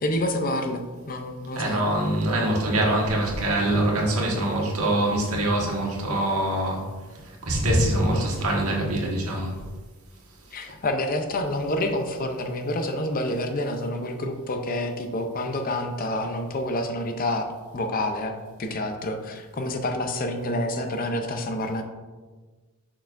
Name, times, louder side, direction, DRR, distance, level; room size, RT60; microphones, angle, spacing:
voice 1, 0.0-1.8 7.9-8.3 10.5-21.8, left 1 dB, 40° left, 6 dB, 0.6 m, -28 dB
voice 2, 1.5-6.8 7.5-9.5, right 1 dB, 80° right, -2 dB, 1.4 m, -24 dB
6.6 x 5.9 x 2.5 m, 1.3 s
head